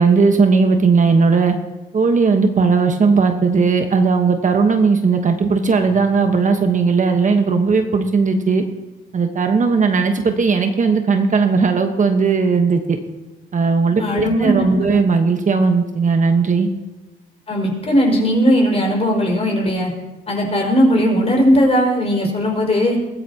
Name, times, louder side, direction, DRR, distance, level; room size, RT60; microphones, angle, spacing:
voice 1, 0.0-1.5 1.9-8.6 9.1-13.0 13.5-16.7, right 4 dB, 40° right, 5 dB, 1.2 m, -16 dB
voice 2, 14.0-15.0 17.5-19.9 20.3-23.0, equal, 30° left, 0 dB, 5.3 m, -17 dB
22.0 x 14.5 x 2.9 m, 1.1 s
cardioid pair, 90°, 20 cm